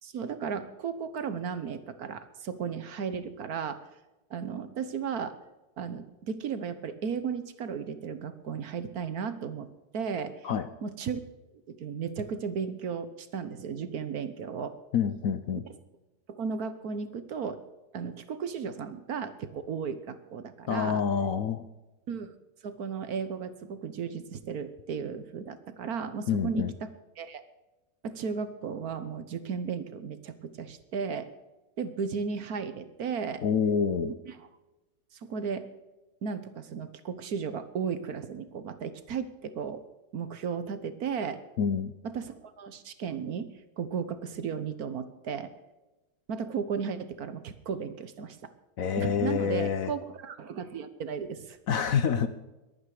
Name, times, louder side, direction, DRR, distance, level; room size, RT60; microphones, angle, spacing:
voice 1, 0.0-3.8 4.3-5.4 5.8-9.7 9.9-10.5 10.8-11.2 11.7-14.8 16.3-17.6 17.9-21.0 22.1-22.3 22.6-26.9 27.2-27.4 28.0-31.3 31.8-33.4 34.3-34.5 35.1-35.7 36.2-39.8 40.1-41.4 42.0-43.5 43.8-45.5 46.3-48.4 49.0-51.6, right 6 dB, 60° right, 1.4 m, -35 dB
voice 2, 14.9-15.6 20.7-21.6 26.3-26.7 33.4-34.1 41.6-41.9 48.8-49.9 51.7-52.3, left 7 dB, 60° left, 1.0 m, -27 dB
22.0 x 9.2 x 4.9 m
omnidirectional pair, 1.9 m